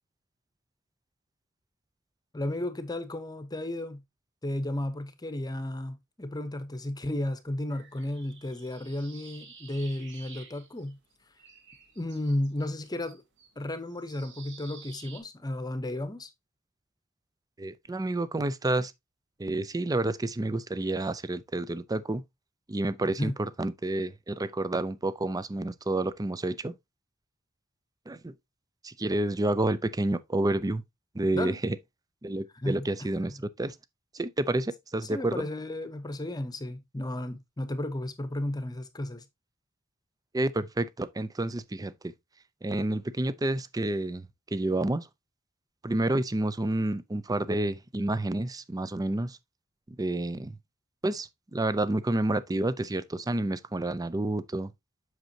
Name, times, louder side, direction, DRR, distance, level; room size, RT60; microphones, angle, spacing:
voice 1, 2.3-4.0 4.4-11.0 12.0-13.2 13.6-16.3 23.2-23.4 31.3-31.6 32.5-33.2 35.0-39.2, left 1 dB, 20° left, 0.9 m, -33 dB
sound 1, 7.7-11.1 11.4-15.2, right 5 dB, 60° right, 2.2 m, -52 dB
voice 2, 17.6-18.9 19.4-22.2 22.7-26.7 28.1-28.3 28.8-30.8 31.1-31.8 32.2-33.8 34.1-35.5 40.3-42.1 42.6-44.3 44.5-45.1 45.8-49.4 49.9-50.6 51.0-54.7, right 2 dB, 15° right, 0.5 m, -29 dB
7.9 x 6.2 x 2.8 m
head